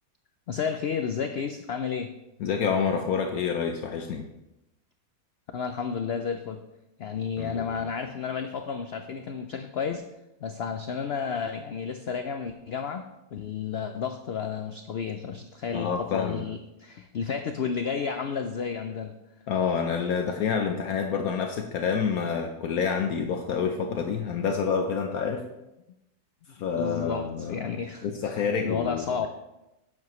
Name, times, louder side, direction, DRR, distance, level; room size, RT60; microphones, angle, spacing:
voice 1, 0.5-2.1 5.5-6.6 7.0-10.0 10.4-19.1 26.7-28.3 28.6-29.3, left 6 dB, 85° left, 7 dB, 0.5 m, -32 dB
voice 2, 2.4-4.3 7.4-7.8 15.7-16.4 19.5-25.4 26.6-27.7 28.0-29.3, left 6 dB, 70° left, 4 dB, 1.1 m, -28 dB
10.5 x 7.6 x 3.1 m, 0.92 s
omnidirectional pair, 1.7 m